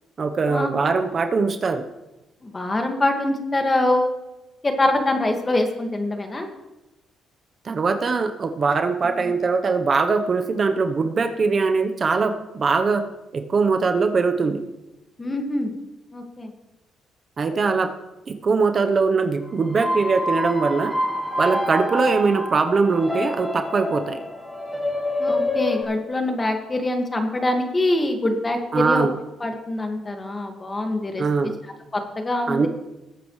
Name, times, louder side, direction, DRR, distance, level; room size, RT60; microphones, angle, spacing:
voice 1, 0.2-1.8 7.6-13.0 13.3-14.6 17.4-17.9 18.3-20.9 21.4-24.2 28.7-29.1 31.2-31.6 32.5-32.7, right 4 dB, 40° right, 7 dB, 0.9 m, -21 dB
voice 2, 2.4-4.1 4.6-6.5 9.2-9.3 15.2-15.7 16.1-16.5 25.2-29.1 29.4-31.2 31.9-32.7, left 2 dB, 25° left, 4 dB, 1.9 m, -24 dB
sound 1, 19.6-25.8, left 1 dB, 5° left, 2.4 m, -27 dB
20.0 x 8.7 x 3.2 m, 0.99 s
cardioid pair, 90°, 0 cm